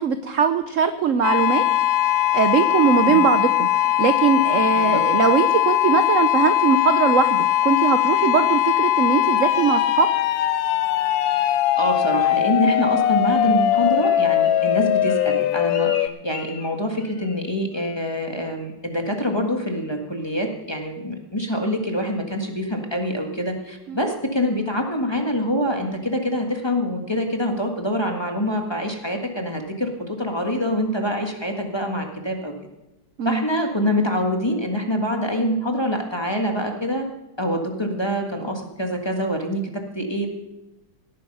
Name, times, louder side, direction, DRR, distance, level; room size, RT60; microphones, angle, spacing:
voice 1, 0.0-1.6 2.0-10.1 23.9-24.0 33.2-33.5, right 7 dB, 65° right, 10 dB, 0.8 m, -21 dB
sound 1, 1.2-16.1, left 12 dB, 90° left, 1.4 m, -20 dB
voice 2, 11.8-32.5 33.2-37.0 37.4-40.3, equal, 15° left, 2 dB, 1.6 m, -25 dB
Bird, 13.4-17.5 17.7-18.1 18.4-18.7 19.1-19.4 19.8-19.9, left 4 dB, 40° left, 1.5 m, -41 dB
17.5 x 9.0 x 5.5 m, 1.0 s
omnidirectional pair, 2.1 m